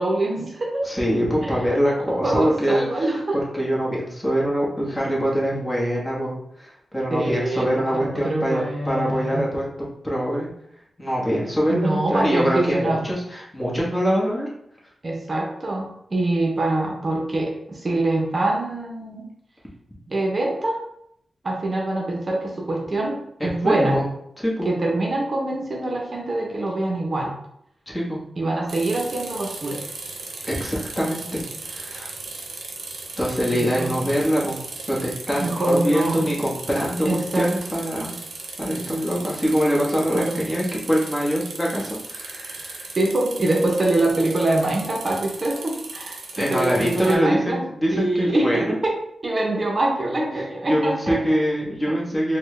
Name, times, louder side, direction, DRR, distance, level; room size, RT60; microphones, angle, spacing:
voice 1, 0.0-0.9 1.4-1.5 2.2-3.4 7.1-9.4 11.7-13.0 15.0-19.3 20.1-20.8 21.4-23.2 23.4-24.0 24.6-27.3 28.4-29.8 33.4-33.9 35.4-36.3 37.0-37.5 40.1-40.4 43.0-47.6 47.9-48.9 49.2-51.2 51.9-52.0, right 2 dB, 40° right, -1 dB, 0.7 m, -24 dB
voice 2, 0.8-2.8 3.5-9.6 10.0-10.5 11.0-14.5 23.4-24.1 24.4-24.7 27.9-28.2 30.4-32.1 33.2-34.6 34.9-38.1 38.6-43.0 46.4-48.8 50.4-52.4, equal, 15° left, -5 dB, 1.1 m, -24 dB
sound 1, 28.7-47.1, right 3 dB, 80° right, 0.6 m, -37 dB
4.3 x 2.2 x 3.2 m, 0.73 s
wide cardioid pair, 95°, 0 cm